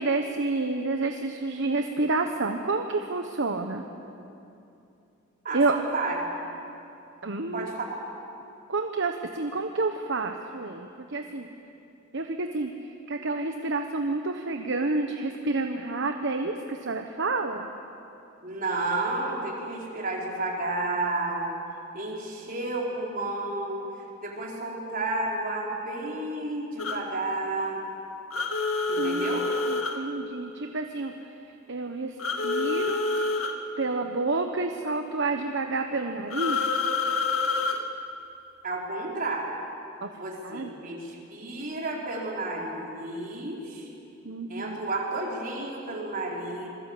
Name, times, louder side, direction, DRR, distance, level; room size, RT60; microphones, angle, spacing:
voice 1, 0.0-3.8 5.5-5.7 7.2-7.7 8.7-11.5 12.1-12.7 13.1-17.7 29.0-29.4 29.7-31.1 31.7-33.0 33.8-36.6 40.0-40.1 40.4-40.7 44.2-44.8, right 3 dB, 60° right, 5 dB, 1.2 m, -29 dB
voice 2, 5.4-6.3 7.5-8.0 18.4-21.5 21.9-23.8 24.2-27.8 28.9-29.5 38.6-39.5 40.1-43.9 44.5-46.7, right 2 dB, 45° right, -2 dB, 5.0 m, -31 dB
sound 1, 26.8-27.0 28.3-30.0 32.2-33.6 36.3-37.8, left 3 dB, 90° left, 2.0 m, -27 dB
27.5 x 21.0 x 8.5 m, 2.7 s
head